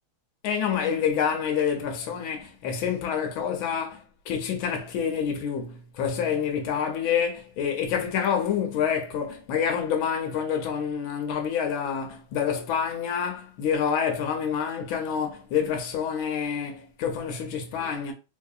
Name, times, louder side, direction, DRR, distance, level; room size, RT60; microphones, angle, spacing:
voice 1, 0.4-18.1, left 7 dB, 85° left, 1.5 m, -27 dB
4.0 x 2.7 x 2.4 m
omnidirectional pair, 2.2 m